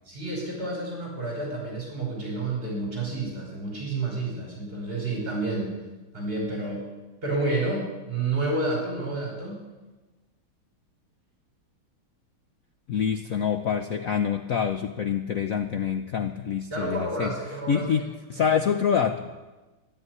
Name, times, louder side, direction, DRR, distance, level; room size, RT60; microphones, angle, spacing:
voice 1, 0.1-5.7 6.1-6.8 7.2-9.6 16.7-17.8, right 2 dB, 25° right, -1 dB, 5.4 m, -30 dB
voice 2, 12.9-17.3 17.7-19.3, left 7 dB, 65° left, 7 dB, 0.8 m, -26 dB
13.5 x 11.0 x 9.5 m, 1.2 s
omnidirectional pair, 2.3 m